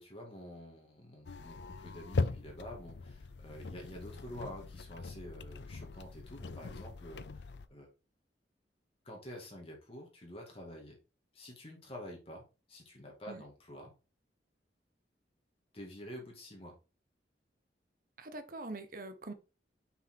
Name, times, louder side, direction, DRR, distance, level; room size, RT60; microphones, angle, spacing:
voice 1, 0.0-7.9 9.0-11.0 11.3-13.9 15.7-16.8, equal, 35° left, 2.1 m, -48 dB
sound 1, 1.2-7.7, left 3 dB, 80° left, 0.6 m, -40 dB
voice 2, 18.2-19.3, right 2 dB, 50° right, 1.1 m, -43 dB
5.8 x 5.6 x 4.4 m
head